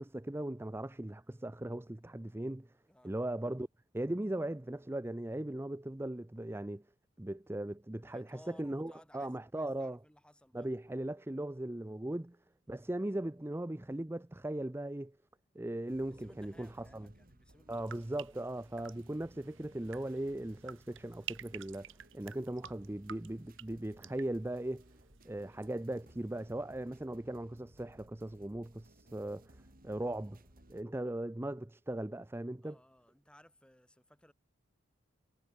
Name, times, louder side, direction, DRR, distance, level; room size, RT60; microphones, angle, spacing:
voice 1, 0.0-2.7 3.0-3.7 3.9-6.8 7.2-10.0 10.5-12.4 12.7-15.2 15.5-17.1 17.7-24.8 25.2-30.4 30.7-32.8, right 1 dB, 10° right, 0.5 m, -38 dB
voice 2, 8.0-10.7 16.1-18.5 32.6-34.3, left 1 dB, 5° left, 6.3 m, -61 dB
sound 1, 15.9-30.8, right 1 dB, 40° right, 3.4 m, -61 dB
sound 2, 17.7-25.7 25.9-26.5, right 10 dB, 60° right, 2.5 m, -51 dB
head